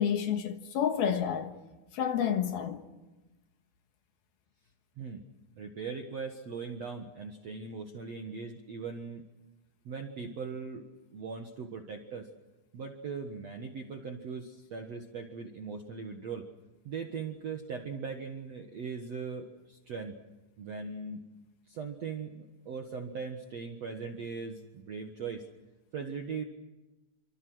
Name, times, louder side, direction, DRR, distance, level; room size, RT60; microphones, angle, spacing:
voice 1, 0.0-1.5 1.9-2.8, left 8 dB, 65° left, 3.0 m, -29 dB
voice 2, 5.6-9.2 9.8-10.8 11.1-12.3 12.7-16.5 16.8-20.2 20.6-21.2 21.7-25.5 25.9-26.4, right 5 dB, 60° right, 1.7 m, -39 dB
28.5 x 26.0 x 6.3 m
omnidirectional pair, 5.3 m